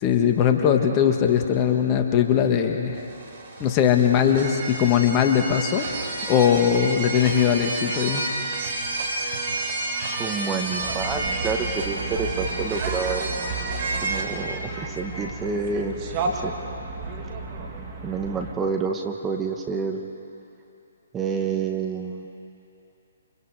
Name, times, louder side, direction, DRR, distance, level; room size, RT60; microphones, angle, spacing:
voice 1, 0.0-3.0 3.6-5.9 6.3-8.2, left 8 dB, 30° left, 4 dB, 1.8 m, -20 dB
sound 1, 2.9-14.2, right 3 dB, 50° right, 4.5 m, -30 dB
voice 2, 10.1-13.2 14.0-16.5 18.0-20.0 21.1-22.3, right 5 dB, 15° right, 3 dB, 1.5 m, -28 dB
sound 2, 10.8-18.5, right 3 dB, 35° right, 3.0 m, -33 dB
28.5 x 27.0 x 5.0 m, 2.8 s
figure-of-eight pair, 135°, 0 cm